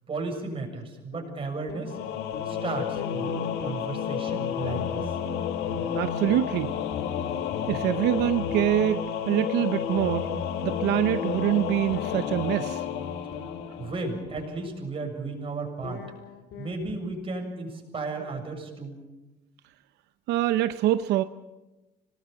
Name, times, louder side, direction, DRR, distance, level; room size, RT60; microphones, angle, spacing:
voice 1, 0.1-2.0 2.5-5.0 13.8-16.0 16.6-19.0, right 3 dB, 30° right, 1 dB, 7.3 m, -34 dB
sound 1, 1.1-2.7 3.0-8.8 10.9-12.1 13.3-14.6 15.8-17.3, left 5 dB, 70° left, 3.2 m, -42 dB
Singing / Musical instrument, 1.9-14.3, left 8 dB, 85° left, 1.9 m, -31 dB
voice 2, 5.9-6.8 7.7-10.3 10.6-12.9 20.3-21.2, right 13 dB, 85° right, 11 dB, 0.8 m, -25 dB
26.0 x 20.0 x 7.3 m, 1.1 s
cardioid pair, 110°, 17 cm